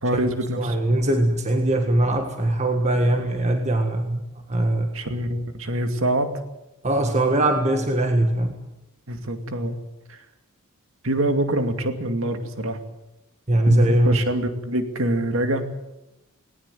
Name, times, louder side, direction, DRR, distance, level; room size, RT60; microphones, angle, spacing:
voice 1, 0.0-0.8 4.9-6.4 9.1-9.8 10.1-10.2 11.0-12.8 13.7-15.6, right 1 dB, 65° right, 7 dB, 2.5 m, -25 dB
voice 2, 0.6-4.2 4.5-4.9 6.8-8.5 13.5-14.2, right 1 dB, 30° right, 4 dB, 1.7 m, -21 dB
19.0 x 19.0 x 9.2 m, 0.96 s
head